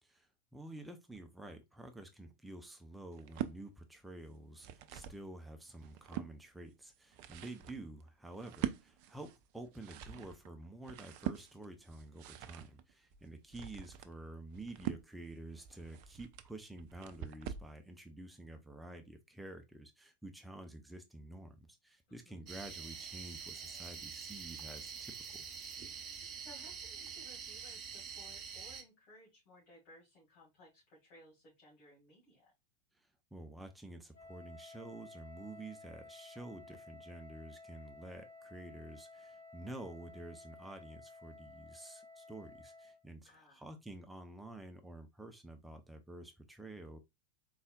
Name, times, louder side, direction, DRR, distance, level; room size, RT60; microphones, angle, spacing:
voice 1, 0.0-25.5 32.9-47.0, right 2 dB, 5° right, 0.7 m, -50 dB
sound 1, 3.1-3.6 4.3-5.2 5.7-6.3 6.9-17.7, right 11 dB, 45° right, 0.4 m, -44 dB
sound 2, 22.5-28.8, right 6 dB, 30° right, 0.9 m, -46 dB
voice 2, 26.4-32.5 43.2-43.6, left 1 dB, 40° left, 2.4 m, -60 dB
Wind instrument woodwind instrument, 34.1-43.0, left 3 dB, 65° left, 1.5 m, -55 dB
4.0 x 3.8 x 2.4 m
figure-of-eight pair, 90°, 0 cm